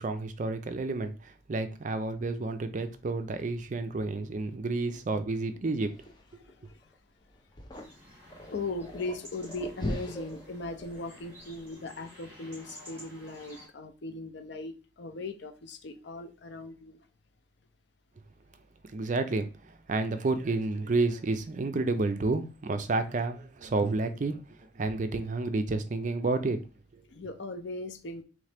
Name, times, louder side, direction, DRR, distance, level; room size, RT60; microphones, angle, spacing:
voice 1, 0.0-5.9 18.8-26.6 26.9-27.0, right 3 dB, 40° right, 0.4 m, -30 dB
sound 1, 5.8-11.7, left 1 dB, 20° left, 0.6 m, -40 dB
voice 2, 6.4-6.9 8.5-17.1 27.1-28.2, left 2 dB, 60° left, 0.6 m, -39 dB
sound 2, 7.7-13.7, left 1 dB, 10° right, 2.0 m, -52 dB
3.8 x 3.2 x 3.4 m
head